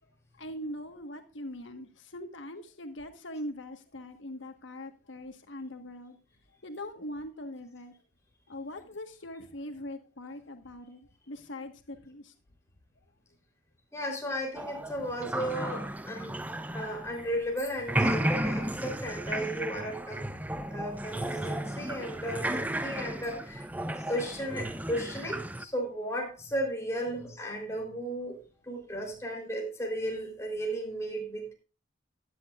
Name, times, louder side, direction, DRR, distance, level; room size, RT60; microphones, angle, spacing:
voice 1, 0.4-6.2 6.6-7.9 8.5-12.3, left 1 dB, 85° left, 6 dB, 1.5 m, -41 dB
voice 2, 13.9-16.4 16.7-20.3 20.7-23.6 24.0-28.4 28.7-31.5, equal, 15° left, 0 dB, 3.7 m, -35 dB
sound 1, 14.5-17.5 17.8-25.6, right 1 dB, 10° right, 0.5 m, -34 dB
16.0 x 10.5 x 2.5 m, 0.33 s
head